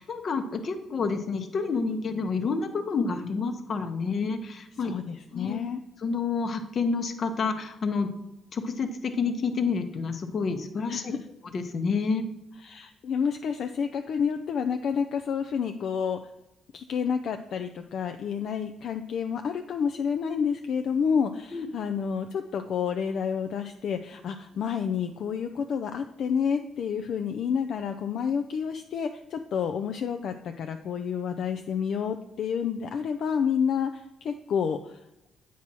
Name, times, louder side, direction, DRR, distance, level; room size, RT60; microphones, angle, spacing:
voice 1, 0.0-4.9 5.3-5.6 6.0-8.1 8.5-11.1 11.5-12.2 21.5-21.7, left 4 dB, 50° left, 7 dB, 0.8 m, -29 dB
voice 2, 4.8-5.8 10.9-11.2 12.6-16.2 16.7-35.0, left 7 dB, 65° left, 7 dB, 0.4 m, -29 dB
8.2 x 2.9 x 6.1 m, 0.91 s
cardioid pair, 90°, 0 cm